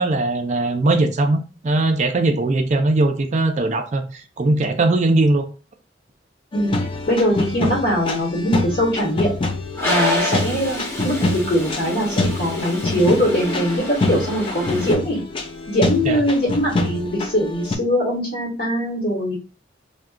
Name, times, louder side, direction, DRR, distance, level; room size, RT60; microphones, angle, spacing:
voice 1, 0.0-5.5 16.0-16.2, right 2 dB, 40° right, 6 dB, 0.4 m, -20 dB
sound 1, 6.5-17.8, left 2 dB, 30° left, 0.3 m, -26 dB
voice 2, 7.1-9.3 9.8-15.2 15.7-19.4, equal, 60° left, -6 dB, 1.0 m, -21 dB
Toilet flush, 9.7-14.9, left 1 dB, 15° left, 0.7 m, -28 dB
2.3 x 2.1 x 3.6 m, 0.34 s
head